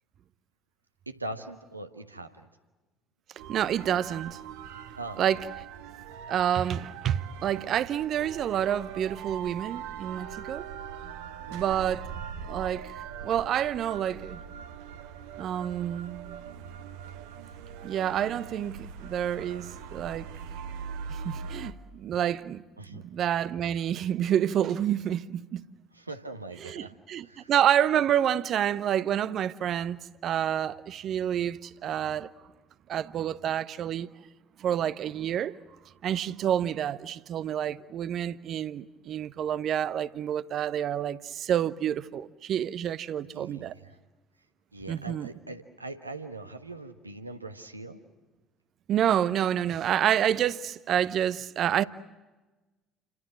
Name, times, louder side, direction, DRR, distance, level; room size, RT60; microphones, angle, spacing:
voice 1, 1.1-2.5 5.0-5.2 11.5-11.7 22.8-23.0 25.9-27.5 43.2-44.0 44.7-48.0, right 2 dB, 85° right, 1.3 m, -41 dB
sound 1, 3.4-21.7, right 7 dB, 65° right, 1.2 m, -41 dB
voice 2, 3.5-4.4 5.2-5.4 6.3-10.7 11.5-12.1 12.5-12.9 13.2-14.4 15.4-16.3 17.8-20.3 21.1-22.6 22.9-25.7 26.6-32.3 32.9-34.1 34.6-35.6 36.0-43.7 44.9-45.3 48.9-51.8, right 10 dB, 45° right, 0.8 m, -28 dB
29.5 x 25.5 x 6.4 m
figure-of-eight pair, 55°, 0 cm